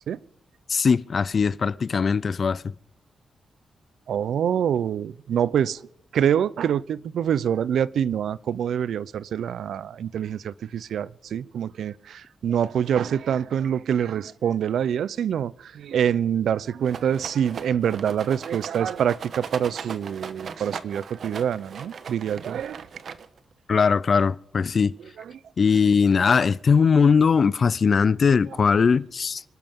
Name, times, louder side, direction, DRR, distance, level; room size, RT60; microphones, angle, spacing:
voice 1, 0.7-2.7 23.7-24.9 25.6-29.4, left 5 dB, 45° left, 0.5 m, -20 dB
voice 2, 4.1-5.8 6.1-22.9, right 9 dB, 80° right, 0.5 m, -25 dB
Rattle, 16.8-23.5, right 6 dB, 60° right, 1.1 m, -38 dB
27.5 x 12.5 x 3.7 m
wide cardioid pair, 130°, 0 cm